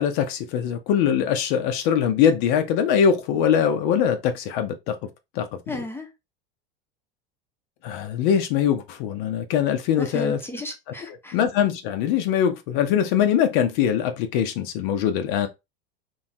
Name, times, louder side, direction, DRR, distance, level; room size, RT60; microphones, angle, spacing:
voice 1, 0.0-5.0 5.4-5.8 7.8-10.4 11.3-15.5, left 8 dB, 60° left, 0.5 m, -22 dB
voice 2, 5.7-6.1 10.0-11.4, left 1 dB, 10° left, 0.5 m, -34 dB
2.9 x 2.2 x 2.6 m
hypercardioid pair, 105°, 29 cm